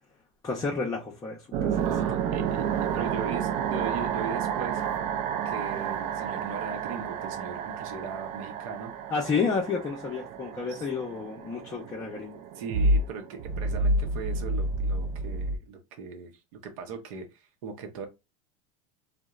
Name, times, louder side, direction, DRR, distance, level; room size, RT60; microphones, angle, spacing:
voice 1, 0.4-1.8 9.1-12.4, left 5 dB, 20° left, 0.5 m, -30 dB
sound 1, 1.5-15.6, right 4 dB, 45° right, 0.4 m, -30 dB
voice 2, 1.8-4.8 5.4-8.9 10.7-10.9 12.5-18.1, right 5 dB, 75° right, 0.7 m, -38 dB
2.8 x 2.1 x 2.3 m
supercardioid pair, 125°, 18 cm